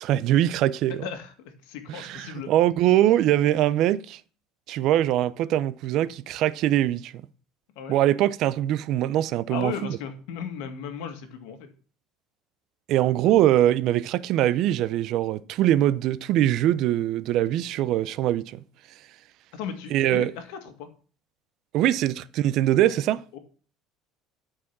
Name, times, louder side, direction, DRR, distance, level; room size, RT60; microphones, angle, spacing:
voice 1, 0.0-1.0 1.9-4.2 4.7-7.1 7.9-9.7 12.9-18.6 19.9-20.3 21.7-23.2, right 13 dB, 50° right, 0.5 m, -22 dB
voice 2, 1.0-2.5 7.8-8.0 9.5-11.7 19.5-20.9 23.3-23.4, left 7 dB, 80° left, 1.8 m, -36 dB
11.5 x 4.8 x 5.9 m
cardioid pair, 155°, 0 cm